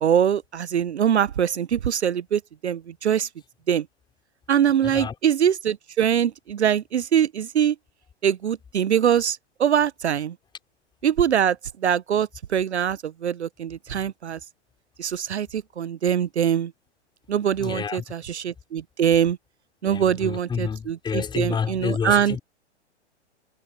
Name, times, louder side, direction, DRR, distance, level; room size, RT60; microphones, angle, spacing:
voice 1, 0.0-3.3 3.7-3.8 4.5-7.7 8.2-10.3 11.0-11.6 11.8-14.4 15.0-16.7 17.3-19.4 19.8-22.4, right 9 dB, 65° right, 0.9 m, -23 dB
voice 2, 4.8-5.1 13.9-14.0 17.6-18.0 19.8-22.4, left 6 dB, 15° left, 3.5 m, -29 dB
figure-of-eight pair, 115°, 35 cm